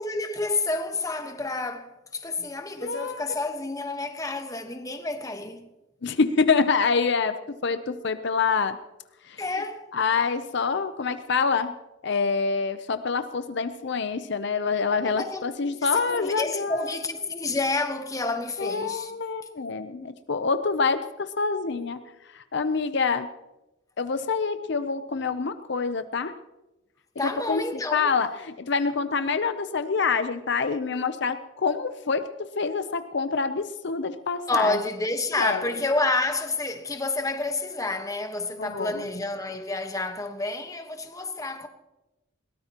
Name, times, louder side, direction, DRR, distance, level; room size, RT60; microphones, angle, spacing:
voice 1, 0.0-5.7 9.4-9.9 15.0-19.1 27.2-28.1 34.5-41.7, left 2 dB, 15° left, 1.2 m, -29 dB
voice 2, 2.8-3.2 6.0-7.4 7.6-8.8 9.2-9.4 9.9-11.7 12.0-17.0 18.6-22.0 22.3-23.3 24.0-26.3 27.2-27.6 27.9-34.8 35.4-35.6 38.6-39.0, left 5 dB, 60° left, 0.6 m, -26 dB
21.5 x 18.0 x 3.0 m
head